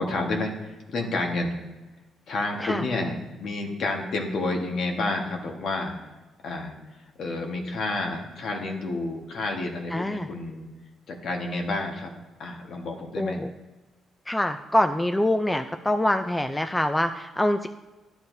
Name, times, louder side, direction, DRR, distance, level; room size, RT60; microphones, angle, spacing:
voice 1, 0.0-1.6 2.3-6.1 6.4-10.7 11.1-12.1 12.4-13.4, left 2 dB, 65° left, 2 dB, 1.3 m, -30 dB
voice 2, 9.9-10.3 13.2-13.5 14.3-17.7, left 1 dB, 10° left, 8 dB, 0.4 m, -25 dB
11.0 x 6.8 x 2.7 m, 1.1 s
cardioid pair, 90°, 0 cm